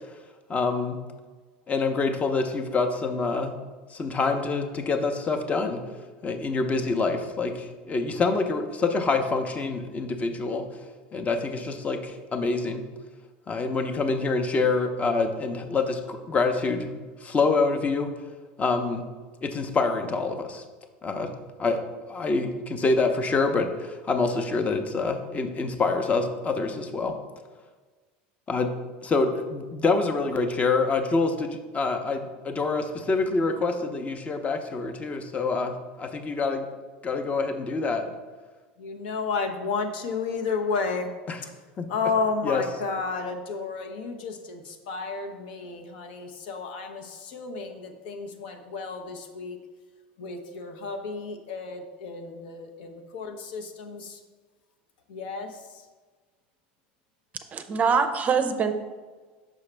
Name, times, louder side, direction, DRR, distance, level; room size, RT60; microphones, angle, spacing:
voice 1, 0.5-1.0 1.7-3.6 3.9-5.8 6.2-10.6 11.1-12.8 13.5-16.9 17.2-18.1 18.6-19.1 19.4-20.6 21.0-21.3 21.6-21.8 22.1-27.1 28.5-28.7 29.0-36.6 37.0-38.0 41.8-41.9 42.5-42.6, left 3 dB, 25° left, 6 dB, 0.7 m, -26 dB
voice 2, 38.8-41.2 41.4-41.6 41.9-49.6 50.2-54.2 55.1-55.9, left 4 dB, 75° left, 4 dB, 0.8 m, -32 dB
voice 3, 57.5-58.7, right 6 dB, 30° right, 9 dB, 0.5 m, -23 dB
6.2 x 4.8 x 3.3 m, 1.4 s
hypercardioid pair, 100°, 5 cm